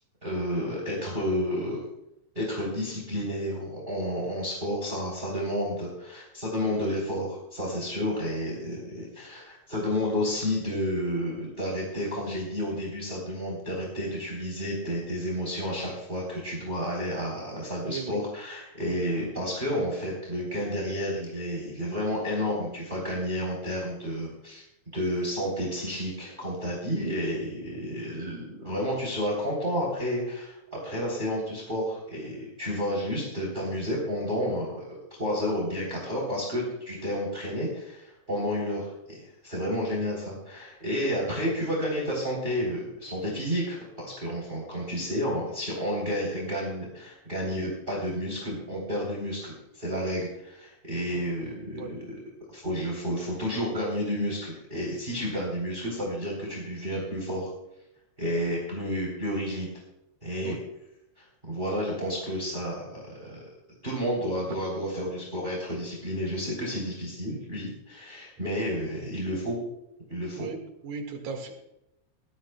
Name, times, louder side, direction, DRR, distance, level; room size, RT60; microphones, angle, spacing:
voice 1, 0.2-1.8 2.3-24.6 24.9-34.8 35.2-52.2 52.5-57.5 58.2-59.7 60.2-60.6 61.2-63.5 63.8-69.6 70.1-70.5, equal, 15° right, -3 dB, 3.5 m, -31 dB
voice 2, 17.8-18.2 51.1-51.3 51.8-51.9 60.4-60.6 70.3-70.6 70.8-71.5, right 5 dB, 70° right, 3 dB, 3.2 m, -36 dB
20.0 x 14.0 x 2.3 m, 0.84 s
omnidirectional pair, 3.3 m